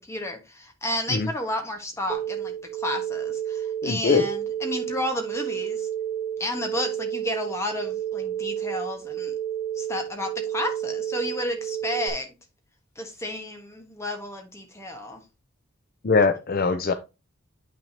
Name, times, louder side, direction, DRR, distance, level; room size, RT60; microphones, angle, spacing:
voice 1, 0.0-5.9 6.4-9.3 9.8-12.3 13.0-15.2, left 1 dB, 15° left, 1.4 m, -32 dB
sound 1, 2.1-12.1, right 10 dB, 5° right, 1.1 m, -31 dB
voice 2, 3.8-4.3 16.0-16.9, left 4 dB, 45° left, 0.5 m, -21 dB
8.6 x 5.9 x 2.8 m
head